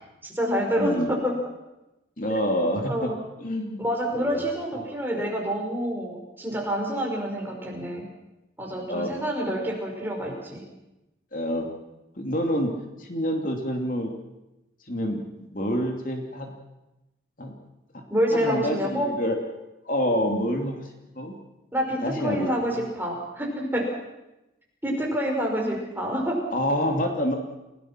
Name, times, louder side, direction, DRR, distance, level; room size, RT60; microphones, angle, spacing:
voice 1, 0.2-1.3 2.3-2.4 2.8-3.2 3.8-8.0 8.6-10.6 18.1-19.1 21.7-23.9 24.8-26.4, equal, 10° right, 0 dB, 5.2 m, -27 dB
voice 2, 0.8-1.1 2.2-3.1 3.4-3.8 4.1-4.4 4.7-4.9 8.9-9.1 11.3-11.7 12.1-12.7 13.0-14.1 14.9-16.5 17.4-17.5 18.3-19.4 19.8-20.9 21.1-21.3 22.0-22.8 26.5-27.3, equal, 45° left, 2 dB, 2.9 m, -27 dB
30.0 x 18.5 x 6.0 m, 0.95 s
head